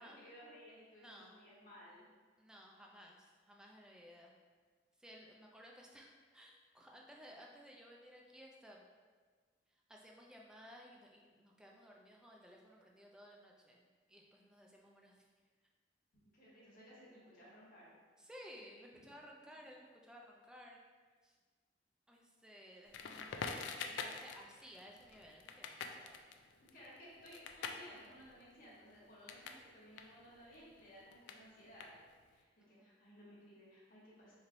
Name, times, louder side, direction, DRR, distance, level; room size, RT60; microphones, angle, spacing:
voice 1, 0.0-2.1 16.3-17.9 18.9-19.1 26.7-31.9 32.3-34.3, equal, 50° left, -6 dB, 1.1 m, -58 dB
voice 2, 1.0-1.4 2.4-4.3 5.0-8.8 9.7-15.2 18.2-20.8 21.2-21.4 22.1-26.3 32.6-33.0, equal, 5° right, -1 dB, 0.3 m, -57 dB
Crackle, 22.9-29.6 29.9-32.3, left 5 dB, 85° left, 0.3 m, -46 dB
4.2 x 3.1 x 2.5 m, 1.5 s
head